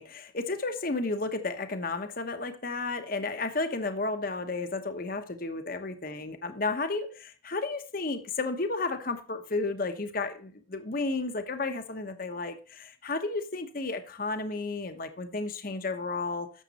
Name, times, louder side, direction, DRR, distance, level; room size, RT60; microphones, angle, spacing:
voice 1, 0.0-16.5, left 3 dB, 45° left, 1.0 m, -32 dB
12.0 x 7.4 x 4.1 m
head